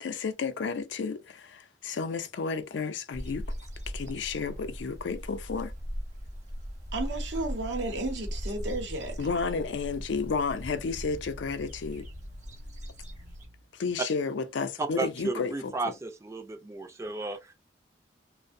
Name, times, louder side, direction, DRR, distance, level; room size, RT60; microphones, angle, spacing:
voice 1, 0.0-3.4 3.9-5.7 9.2-12.1 13.7-15.7, left 5 dB, 80° left, 0.4 m, -32 dB
sound 1, 3.1-13.5, equal, 40° right, 0.7 m, -39 dB
voice 2, 6.9-9.2, right 2 dB, 85° right, 0.7 m, -33 dB
sound 2, 8.4-13.9, equal, 35° left, 0.5 m, -52 dB
voice 3, 14.8-17.5, right 3 dB, 15° right, 0.4 m, -33 dB
2.5 x 2.0 x 2.5 m
head